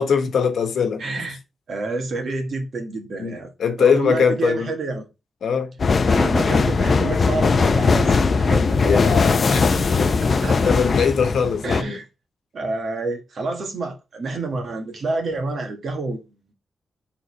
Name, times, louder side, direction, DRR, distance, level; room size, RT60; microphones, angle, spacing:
voice 1, 0.0-1.2 3.2-4.7 5.4-5.8 8.8-10.1 10.6-12.0, left 6 dB, 75° left, 1.1 m, -22 dB
voice 2, 1.0-1.4 1.7-3.5 3.8-5.1 6.1-9.2 9.7-9.8 10.2-10.6 11.6-12.0 12.5-16.5, right 3 dB, 50° right, 1.5 m, -28 dB
sound 1, 5.8-11.8, left 4 dB, 40° left, 0.5 m, -19 dB
4.7 x 3.9 x 5.2 m
wide cardioid pair, 165°, 0 cm